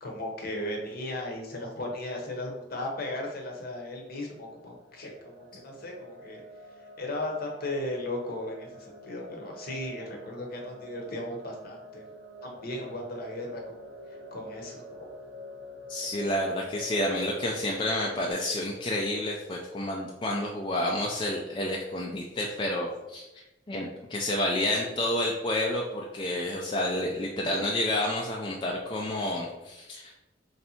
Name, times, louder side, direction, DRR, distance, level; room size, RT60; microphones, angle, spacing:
voice 1, 0.0-6.4 7.0-12.0 12.4-13.7 14.3-15.1, left 1 dB, 55° left, 1 dB, 0.8 m, -36 dB
sound 1, 4.0-18.3, equal, 75° right, 0.6 m, -47 dB
voice 2, 15.9-23.3 23.7-30.1, left 1 dB, 25° left, -1 dB, 0.4 m, -29 dB
3.2 x 2.7 x 4.2 m, 1.0 s
head